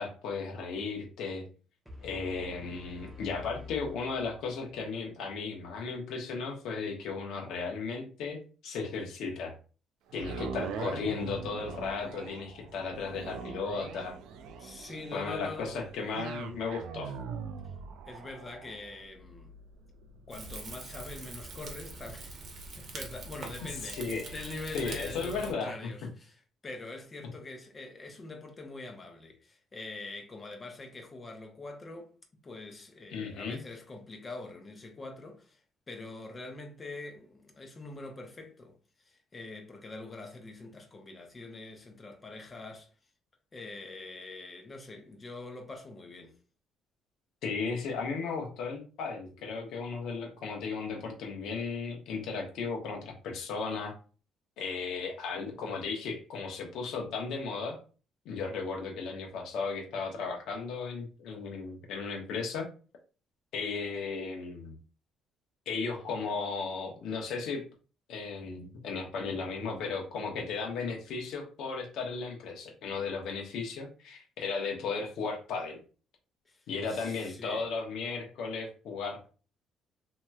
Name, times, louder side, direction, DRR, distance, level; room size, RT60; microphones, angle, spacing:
voice 1, 0.0-1.4 2.0-8.4 8.6-9.5 10.1-14.2 15.1-17.1 23.8-24.3 24.7-25.9 33.1-33.6 47.4-53.9 54.6-57.8 58.2-62.7 63.5-64.7 65.7-67.6 68.1-75.8 76.7-79.3, left 4 dB, 75° left, 1.1 m, -35 dB
sound 1, 1.9-4.9, left 3 dB, 5° right, 0.9 m, -48 dB
sound 2, 10.1-24.3 24.8-24.9, right 6 dB, 80° right, 0.4 m, -43 dB
voice 2, 14.6-15.8 18.1-19.5 20.3-22.4 22.8-26.4 26.6-32.1 32.4-35.6 35.9-38.7 39.1-42.9 43.5-46.4 76.5-76.6 76.9-77.7, left 2 dB, 30° left, 0.8 m, -44 dB
Rain / Fire, 20.3-25.5, right 3 dB, 55° right, 1.0 m, -43 dB
2.9 x 2.9 x 2.3 m
cardioid pair, 90°, 0 cm